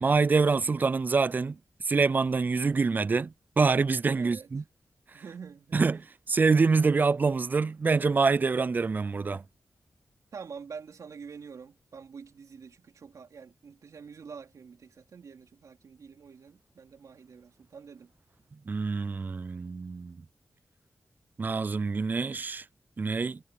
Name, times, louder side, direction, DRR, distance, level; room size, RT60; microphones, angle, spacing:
voice 1, 0.0-1.6 1.8-4.6 5.7-9.4 18.7-20.2 21.4-22.6 23.0-23.4, right 4 dB, 35° right, 0.3 m, -26 dB
voice 2, 4.1-4.5 5.1-5.8 10.3-18.1, right 6 dB, 80° right, 3.6 m, -46 dB
wide cardioid pair, 170°, 5 cm